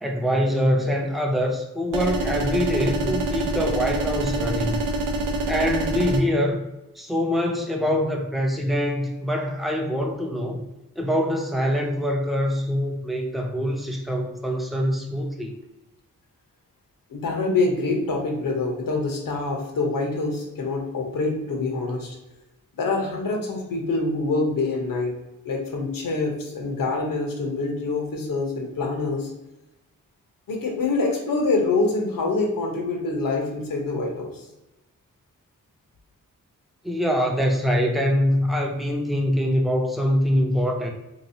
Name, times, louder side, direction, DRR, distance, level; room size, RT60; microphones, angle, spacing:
voice 1, 0.0-4.8 5.5-6.6 6.9-10.6 11.0-15.5 36.8-40.9, equal, ahead, 1 dB, 0.5 m, -24 dB
sound 1, 1.9-6.2, right 2 dB, 80° right, 0.6 m, -26 dB
voice 2, 17.1-22.2 22.8-25.1 25.4-29.3 30.5-34.5, left 3 dB, 90° left, 1 dB, 1.0 m, -25 dB
3.5 x 3.0 x 2.7 m, 0.94 s
wide cardioid pair, 135°, 33 cm